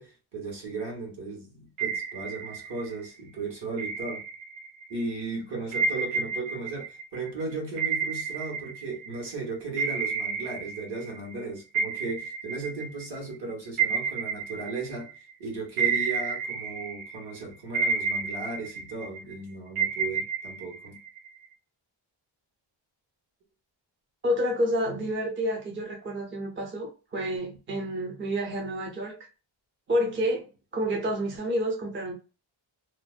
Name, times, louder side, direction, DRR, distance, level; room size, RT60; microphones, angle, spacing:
voice 1, 0.0-4.2 4.9-15.1 15.4-21.0, right 3 dB, 55° right, 1.2 m, -36 dB
sound 1, 1.8-3.1 3.8-4.9 5.7-9.3 9.8-11.4 11.7-15.3 15.8-17.3 17.7-19.3 19.8-21.5, right 5 dB, 85° right, 0.7 m, -31 dB
voice 2, 24.2-29.2 29.9-30.5 30.7-32.1, equal, 25° right, 0.5 m, -29 dB
2.5 x 2.1 x 2.4 m
wide cardioid pair, 115°, 48 cm